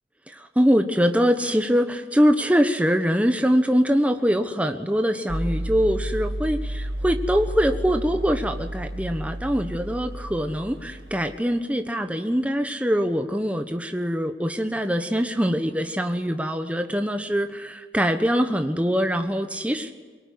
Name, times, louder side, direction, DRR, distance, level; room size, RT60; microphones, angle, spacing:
voice 1, 0.3-19.9, equal, 10° right, 6 dB, 1.1 m, -23 dB
sound 1, 5.3-11.4, right 1 dB, 75° right, 2.3 m, -31 dB
23.5 x 22.5 x 9.7 m, 1.5 s
head